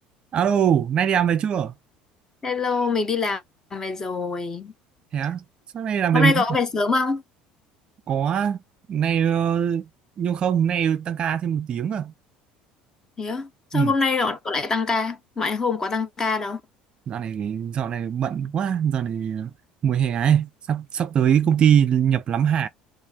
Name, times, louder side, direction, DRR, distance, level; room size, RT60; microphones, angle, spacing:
voice 1, 0.3-1.7 5.1-5.4 5.7-6.4 8.1-8.6 8.9-9.9 10.2-12.1 13.7-13.9 17.1-19.5 19.8-22.7, right 8 dB, 30° right, 0.4 m, -22 dB
voice 2, 2.4-3.4 3.7-4.7 6.1-7.2 13.2-16.6, left 4 dB, 15° left, 0.5 m, -24 dB
4.5 x 2.4 x 3.4 m
cardioid pair, 170°, 3 cm